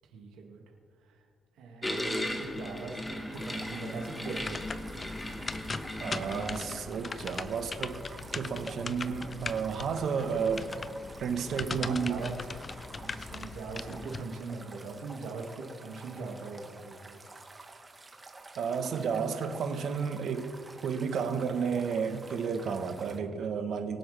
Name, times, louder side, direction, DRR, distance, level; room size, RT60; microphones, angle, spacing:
voice 1, 0.1-0.6 1.0-1.2 1.6-4.9 11.7-12.4 13.0-17.2, right 4 dB, 90° right, 0 dB, 2.2 m, -41 dB
sound 1, 1.8-6.8, left 1 dB, 15° left, 1.5 m, -36 dB
sound 2, 3.3-23.2, right 3 dB, 25° right, 1.3 m, -50 dB
sound 3, 4.3-14.2, left 4 dB, 30° left, 0.5 m, -40 dB
voice 2, 6.0-8.0 8.3-10.7 11.2-12.2 18.6-20.5 20.8-24.0, right 6 dB, 65° right, 6 dB, 1.3 m, -32 dB
23.0 x 8.0 x 3.5 m, 2.1 s
cardioid pair, 90°, 0 cm